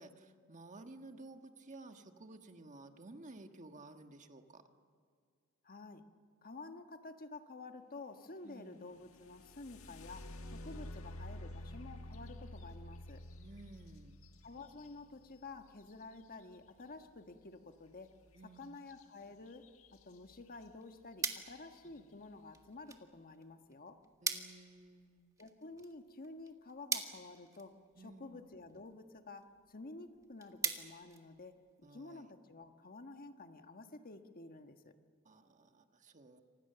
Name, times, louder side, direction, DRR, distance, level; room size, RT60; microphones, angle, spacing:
voice 1, 0.0-4.6 8.4-8.8 13.4-14.3 18.3-18.8 22.0-22.1 24.2-25.3 27.9-28.4 31.8-32.3 35.2-36.4, right 2 dB, 35° right, 6 dB, 1.5 m, -54 dB
voice 2, 5.6-6.0 6.4-13.2 14.4-18.1 18.4-19.6 19.9-24.0 25.4-34.9, left 3 dB, 45° left, 7 dB, 1.4 m, -51 dB
sound 1, 9.0-16.8 18.9-19.0 19.5-20.0 20.6-20.7 21.2-21.6, left 1 dB, 80° left, 1.7 m, -50 dB
sound 2, 20.5-31.9, right 4 dB, 15° right, 1.8 m, -45 dB
29.0 x 25.5 x 6.9 m, 2.1 s
head